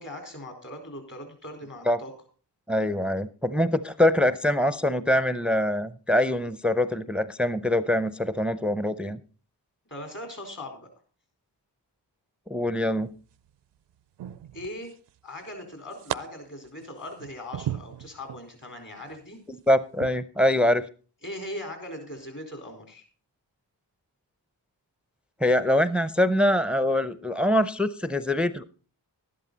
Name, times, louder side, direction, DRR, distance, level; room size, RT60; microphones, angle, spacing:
voice 1, 0.0-2.1 9.9-10.9 14.5-14.9 15.2-19.4 21.2-23.0, left 1 dB, 45° left, 4 dB, 4.3 m, -39 dB
voice 2, 2.7-9.2 12.5-13.1 19.5-20.9 25.4-28.6, left 1 dB, 5° right, 15 dB, 0.6 m, -24 dB
sound 1, 13.0-13.5 14.2-15.1 15.4-16.2 16.6-18.5 19.0-19.2 19.9-20.1, right 12 dB, 70° right, 0.5 m, -36 dB
11.5 x 11.0 x 4.0 m, 0.38 s
cardioid pair, 40°, 43 cm